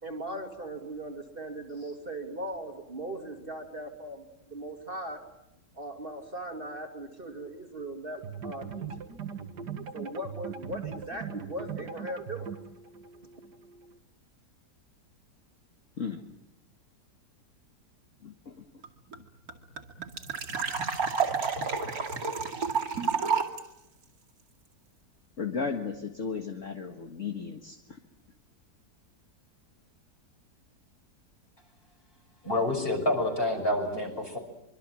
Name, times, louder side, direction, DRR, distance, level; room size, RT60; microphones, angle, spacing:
voice 1, 0.0-5.2 5.7-9.1 9.9-12.5, right 1 dB, 30° right, 4 dB, 2.6 m, -39 dB
sound 1, 8.2-14.0, right 7 dB, 75° right, 2.4 m, -40 dB
voice 2, 18.2-18.7 25.4-28.0, left 5 dB, 50° left, 4 dB, 2.0 m, -35 dB
sound 2, 18.8-18.9 19.1-19.2 19.5-23.6, right 5 dB, 60° right, 2.9 m, -30 dB
voice 3, 32.4-34.4, left 1 dB, 30° left, 4 dB, 6.3 m, -28 dB
25.5 x 24.5 x 7.6 m, 0.88 s
omnidirectional pair, 1.8 m